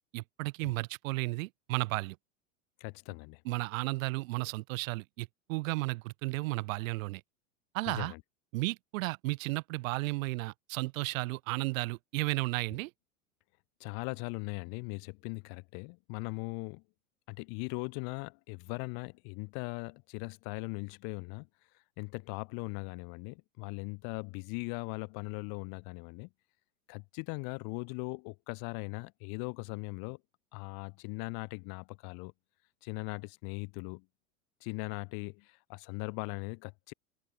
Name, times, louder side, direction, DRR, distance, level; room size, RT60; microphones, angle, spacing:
voice 1, 0.1-2.2 3.5-7.2 7.7-8.1 8.5-12.9, right 22 dB, 65° right, 2.1 m, -33 dB
voice 2, 2.8-3.4 7.9-8.2 13.8-16.8 17.3-21.5 22.0-26.3 26.9-30.2 30.5-32.3 32.8-34.0 34.6-36.9, left 34 dB, 55° left, 3.1 m, -39 dB
hypercardioid pair, 95°, 43 cm